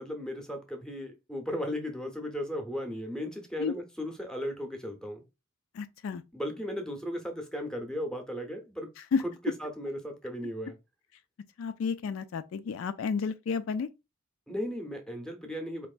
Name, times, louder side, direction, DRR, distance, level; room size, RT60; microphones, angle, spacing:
voice 1, 0.0-5.2 6.3-8.9 9.2-10.8 14.5-15.9, equal, 5° left, 0.7 m, -36 dB
voice 2, 5.7-6.2 9.1-9.2 11.6-13.9, left 5 dB, 60° left, 0.3 m, -31 dB
4.4 x 3.0 x 2.4 m
head